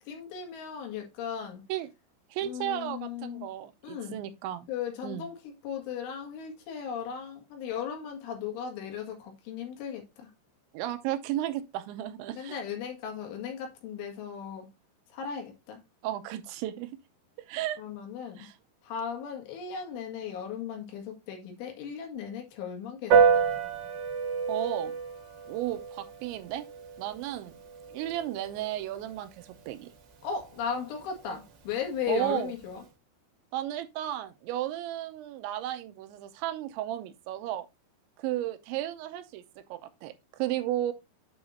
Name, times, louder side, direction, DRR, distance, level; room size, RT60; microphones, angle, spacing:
voice 1, 0.1-1.6 2.4-3.5 3.8-4.2 4.7-5.4 5.6-10.3 12.3-14.7 15.1-15.8 17.8-18.5 18.8-23.2 30.2-32.8, left 7 dB, 90° left, 4.3 m, -36 dB
voice 2, 2.3-4.7 5.0-5.3 10.7-12.6 16.0-16.9 17.5-17.8 18.4-18.6 24.5-25.0 25.5-26.6 27.0-27.6 27.9-29.9 32.1-32.5 33.5-37.7 38.2-40.9, right 13 dB, 85° right, 3.0 m, -34 dB
Piano, 23.1-32.8, right 6 dB, 70° right, 1.4 m, -30 dB
8.6 x 6.4 x 2.6 m
omnidirectional pair, 5.4 m